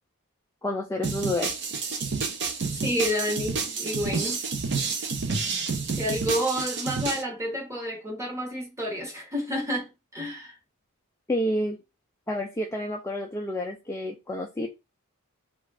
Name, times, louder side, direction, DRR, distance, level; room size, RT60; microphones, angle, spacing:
voice 1, 0.6-1.5 11.3-11.8 12.3-14.7, left 1 dB, 10° left, 0.3 m, -29 dB
sound 1, 1.0-7.2, right 4 dB, 50° right, 0.6 m, -29 dB
voice 2, 2.7-4.4 5.9-10.6, equal, 15° right, 1.0 m, -30 dB
3.5 x 2.4 x 3.3 m
head